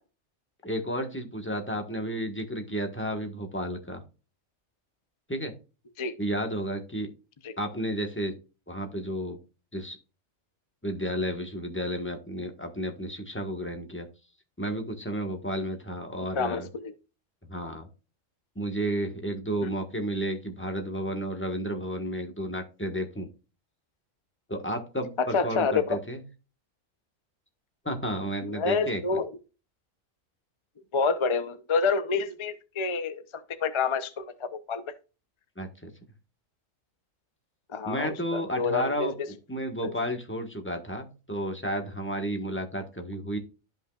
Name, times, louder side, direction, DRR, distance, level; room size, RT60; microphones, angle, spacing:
voice 1, 0.6-4.0 5.3-5.5 6.2-7.1 7.6-8.4 8.7-9.4 9.7-10.0 10.8-14.1 14.6-16.7 17.5-17.9 18.5-23.3 24.5-26.2 27.8-29.0 35.6-35.9 37.8-43.4, equal, 10° left, 4 dB, 1.3 m, -32 dB
voice 2, 16.4-16.9 19.6-19.7 25.2-26.0 28.4-29.3 30.9-33.2 33.6-34.9 37.7-39.1 39.8-39.9, left 4 dB, 30° left, 10 dB, 0.6 m, -28 dB
13.5 x 5.5 x 2.4 m, 0.32 s
omnidirectional pair, 1.4 m